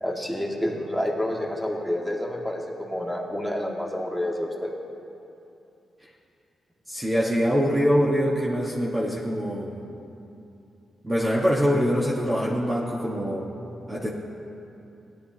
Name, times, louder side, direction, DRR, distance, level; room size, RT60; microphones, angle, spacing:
voice 1, 0.0-4.7, left 1 dB, 5° right, -2 dB, 2.0 m, -29 dB
voice 2, 6.9-9.7 11.0-13.5 13.9-14.1, equal, 25° right, -5 dB, 1.4 m, -24 dB
16.5 x 11.0 x 2.9 m, 2.8 s
cardioid pair, 60°, 0 cm